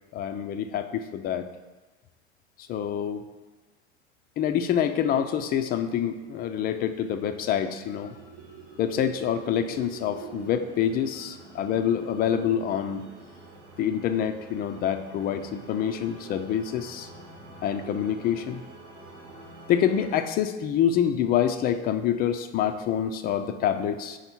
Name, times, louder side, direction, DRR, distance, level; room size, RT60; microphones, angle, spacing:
voice 1, 0.1-1.4 2.7-3.2 4.4-8.1 8.8-13.0 13.8-17.1 17.6-18.6 19.7-24.2, left 9 dB, 25° left, 8 dB, 0.4 m, -26 dB
sound 1, 5.9-20.2, right 2 dB, 85° right, 1.1 m, -49 dB
sound 2, 7.4-13.6, right 7 dB, 65° right, 0.8 m, -46 dB
5.1 x 4.3 x 4.4 m, 1.2 s
figure-of-eight pair, 80°, 35 cm